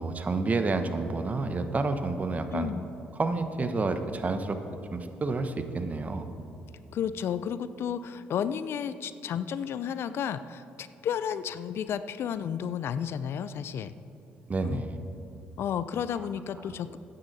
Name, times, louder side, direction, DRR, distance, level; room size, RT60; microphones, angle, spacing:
voice 1, 0.0-2.7 3.1-4.6 4.9-6.3 14.5-15.0 16.1-16.3 16.7-16.8, right 3 dB, 35° right, 8 dB, 1.0 m, -29 dB
voice 2, 2.5-2.8 6.9-13.9 14.6-14.8 15.6-17.0, left 8 dB, 65° left, 14 dB, 0.5 m, -32 dB
13.5 x 9.7 x 4.1 m, 2.9 s
supercardioid pair, 60°, 5 cm